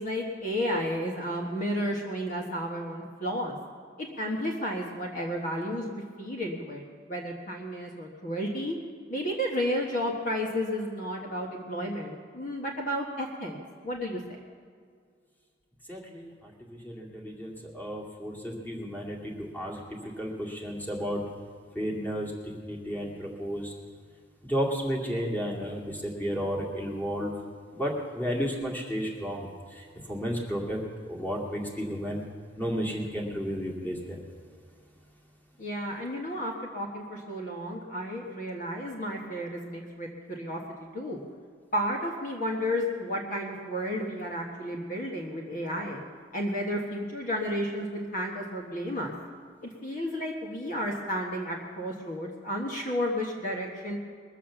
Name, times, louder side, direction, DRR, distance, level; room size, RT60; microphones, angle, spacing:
voice 1, 0.0-3.6 4.0-8.8 9.1-13.6 13.8-14.4 35.6-40.6 40.9-41.2 41.7-46.0 46.3-49.1 49.8-54.0, equal, 45° left, 0 dB, 1.4 m, -32 dB
voice 2, 15.9-16.3 16.8-21.2 21.8-22.3 22.6-23.7 24.4-27.3 27.7-30.8 31.1-32.2 32.6-34.2, equal, 10° left, -2 dB, 2.2 m, -32 dB
21.5 x 7.4 x 7.0 m, 2.1 s
head